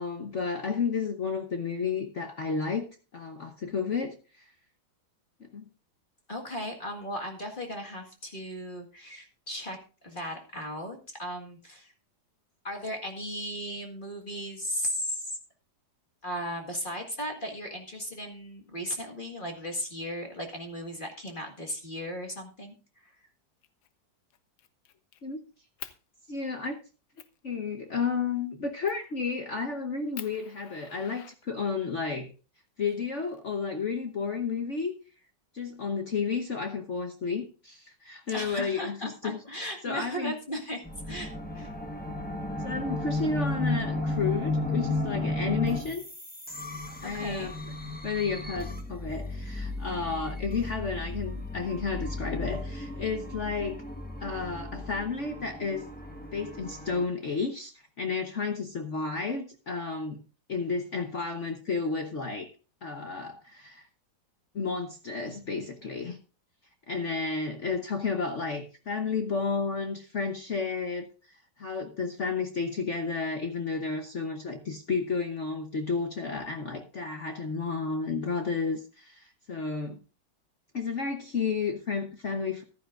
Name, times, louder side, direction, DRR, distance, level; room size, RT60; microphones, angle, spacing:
voice 1, 0.0-2.8 3.1-4.4 5.4-5.6 25.2-25.4 26.3-26.8 27.4-32.3 32.8-34.9 35.5-39.4 39.8-40.3 42.6-46.0 47.0-47.6 48.0-53.8 54.2-55.9 56.3-57.7 58.0-60.2 60.5-62.5 62.8-63.9 64.5-66.2 66.9-71.1 71.6-80.0 80.7-82.6, left 5 dB, 45° left, 1.1 m, -32 dB
voice 2, 6.3-11.9 12.6-15.4 16.2-22.7 23.0-23.1 38.3-41.7 47.0-47.5, equal, 25° left, 1.9 m, -36 dB
Fire, 23.6-23.9 24.3-25.2 25.8-26.0 26.6-26.7 27.2-27.4 28.8-29.1 29.6-29.7 30.1-31.9 33.0-33.9, left 10 dB, 65° left, 1.3 m, -46 dB
sound 1, 40.8-57.0, left 2 dB, 5° left, 1.1 m, -34 dB
15.0 x 11.5 x 2.5 m
omnidirectional pair, 2.1 m